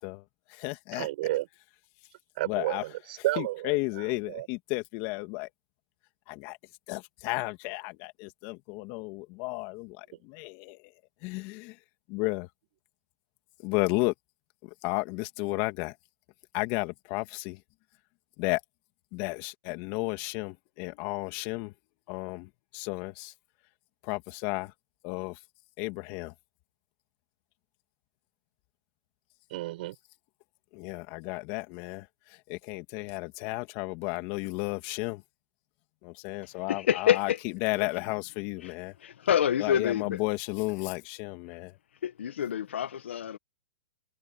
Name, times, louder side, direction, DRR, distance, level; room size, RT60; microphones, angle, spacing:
voice 1, 0.0-1.1 2.4-2.8 3.4-5.5 6.3-6.6 6.9-10.9 11.2-11.8 12.1-12.5 13.6-14.1 14.6-16.0 16.5-17.6 18.4-18.6 19.1-21.7 22.1-23.3 24.0-24.7 25.0-25.4 25.8-26.3 30.7-35.2 36.0-39.0 39.6-41.8, left 24 dB, 35° left, 2.6 m, -33 dB
voice 2, 1.0-1.5 2.4-3.8 4.3-4.5 29.5-30.0, right 17 dB, 50° right, 6.1 m, -31 dB
voice 3, 36.7-37.4 39.0-40.2 42.0-43.4, left 9 dB, 75° left, 1.6 m, -27 dB
hypercardioid pair, 145°, 6 cm